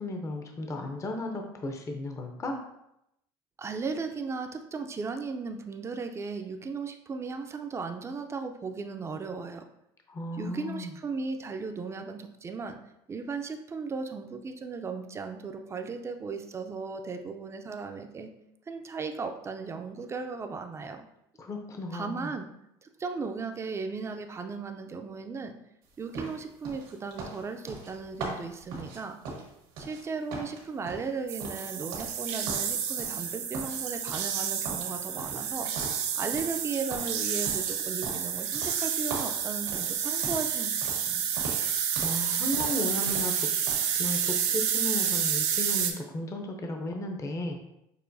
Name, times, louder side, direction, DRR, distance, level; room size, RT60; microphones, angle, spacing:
voice 1, 0.0-2.6 10.1-10.9 21.4-22.3 41.9-43.5 44.0-47.6, left 1 dB, 25° left, 3 dB, 0.6 m, -34 dB
voice 2, 3.6-9.6 10.4-12.8 13.1-18.3 18.7-21.1 21.9-22.5 22.8-25.5 26.0-29.4 29.8-35.7 36.2-41.4, right 4 dB, 25° right, 6 dB, 0.5 m, -36 dB
sound 1, 26.1-30.0 30.3-32.2 32.5-33.3 33.5-34.4 34.6-36.6 36.9-40.5 40.8-41.1 41.3-42.2 42.5-43.4 43.7-43.9, right 3 dB, 85° right, 1.5 m, -40 dB
sound 2, 31.3-45.9, right 8 dB, 65° right, 0.7 m, -30 dB
6.7 x 2.5 x 2.6 m, 0.82 s
supercardioid pair, 100°, 11 cm